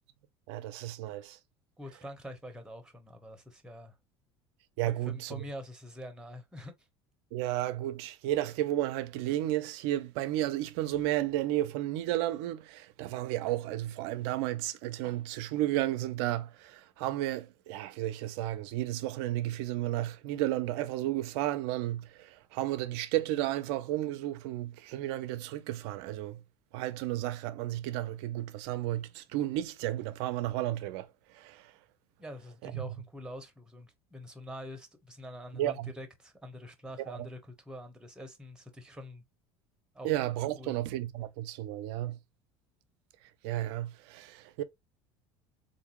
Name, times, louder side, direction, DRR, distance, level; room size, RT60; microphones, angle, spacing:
voice 1, 0.5-1.4 4.8-5.4 7.3-26.4 26.7-31.1 31.3-31.7 32.6-32.9 35.5-35.9 37.0-37.3 40.0-42.2 43.4-44.6, right 14 dB, 70° right, 0.5 m, -33 dB
voice 2, 1.8-4.0 4.9-6.7 32.2-39.2 39.9-40.1 40.6-40.7, left 1 dB, 5° right, 0.9 m, -45 dB
3.5 x 2.6 x 3.0 m
hypercardioid pair, 85°, 14 cm